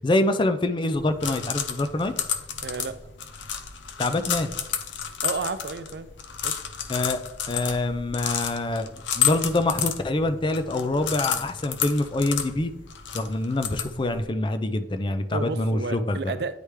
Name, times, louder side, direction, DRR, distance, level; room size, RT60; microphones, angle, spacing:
voice 1, 0.0-2.1 4.0-4.5 6.9-7.2 7.5-8.9 9.1-12.7 13.1-16.3, left 2 dB, 25° left, 0.4 m, -25 dB
sound 1, 0.9-14.2, left 8 dB, 90° left, 0.6 m, -31 dB
voice 2, 2.6-3.0 5.2-6.1 6.4-6.6 15.3-16.6, right 4 dB, 65° right, 0.4 m, -31 dB
9.7 x 3.3 x 3.2 m
head